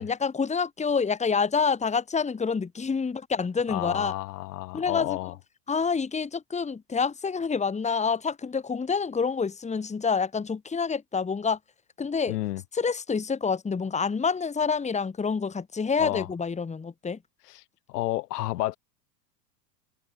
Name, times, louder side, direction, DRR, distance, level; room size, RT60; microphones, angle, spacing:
voice 1, 0.0-4.1 4.7-5.2 5.7-11.6 12.0-12.4 12.7-17.2, left 5 dB, 15° left, 2.5 m, -27 dB
voice 2, 3.7-5.3 12.3-12.6 16.0-16.3 17.5-17.6 17.9-18.8, left 17 dB, 65° left, 3.2 m, -31 dB
hypercardioid pair, 100°, 50 cm